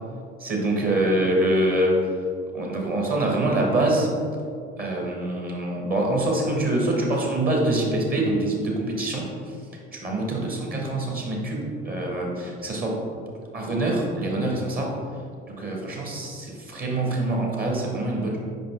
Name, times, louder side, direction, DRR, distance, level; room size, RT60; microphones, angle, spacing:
voice 1, 0.4-2.0 2.5-4.1 4.8-9.6 9.9-13.0 13.5-15.0 15.4-18.4, right 1 dB, 25° right, -1 dB, 1.2 m, -25 dB
5.2 x 5.1 x 3.5 m, 2.3 s
figure-of-eight pair, 60°, 34 cm